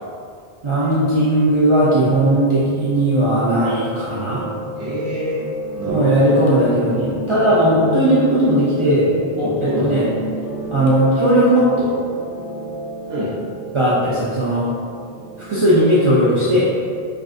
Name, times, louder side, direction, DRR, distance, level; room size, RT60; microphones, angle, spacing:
voice 1, 0.6-4.4 5.8-9.1 9.6-10.1 10.7-12.0 13.7-14.7 15.4-16.7, right 1 dB, 45° right, -9 dB, 0.4 m, -17 dB
Piano, 1.4-15.9, right 2 dB, 60° left, 0.7 m, -31 dB
voice 2, 4.8-6.5 9.3-10.0 13.1-13.3, equal, 80° right, -9 dB, 0.9 m, -26 dB
3.6 x 2.3 x 2.4 m, 2.2 s
omnidirectional pair, 1.1 m